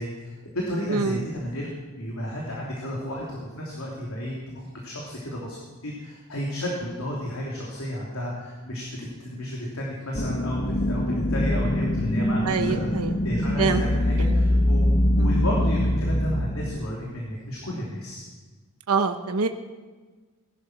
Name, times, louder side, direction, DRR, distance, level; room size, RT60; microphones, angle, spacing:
voice 1, 0.0-1.7 2.0-5.6 5.8-12.9 13.2-18.3, equal, 75° left, -3 dB, 3.1 m, -32 dB
voice 2, 0.9-1.2 12.4-13.1 13.6-13.8 14.3-14.4 15.2-15.4 18.9-19.5, right 4 dB, 85° right, 7 dB, 1.0 m, -25 dB
sound 1, 10.1-16.8, left 1 dB, 40° left, 1.1 m, -23 dB
20.0 x 11.5 x 6.2 m, 1.3 s
head